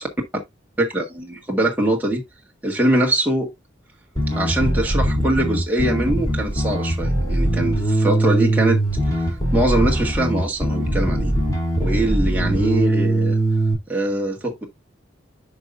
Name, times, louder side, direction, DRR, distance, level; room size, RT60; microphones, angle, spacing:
voice 1, 0.8-2.2 2.6-3.5 4.4-8.8 9.1-11.3 11.8-13.3 13.9-14.6, right 1 dB, 10° right, 1.6 m, -22 dB
Bass guitar, 4.2-13.7, right 1 dB, 20° left, 5.3 m, -21 dB
9.6 x 5.6 x 2.5 m
head